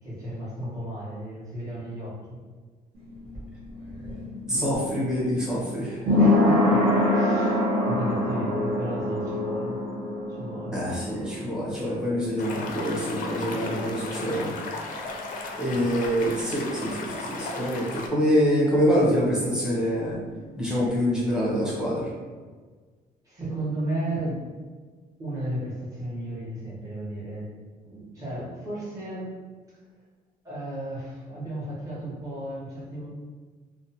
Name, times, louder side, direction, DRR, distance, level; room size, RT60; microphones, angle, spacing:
voice 1, 0.0-2.4 6.2-9.8 10.3-10.8 15.7-16.1 23.2-24.4 25.2-27.5 27.8-29.4 30.4-33.1, right 1 dB, 20° right, -8 dB, 1.0 m, -34 dB
sound 1, 3.0-14.5 14.8-14.9, left 1 dB, 60° right, 1.0 m, -26 dB
voice 2, 4.5-6.0 10.7-14.5 15.6-20.2 20.6-22.1, equal, 5° right, -6 dB, 0.7 m, -25 dB
sound 2, 12.4-18.1, left 3 dB, 55° left, 0.4 m, -36 dB
2.5 x 2.1 x 2.7 m, 1.4 s
cardioid pair, 160°, 16 cm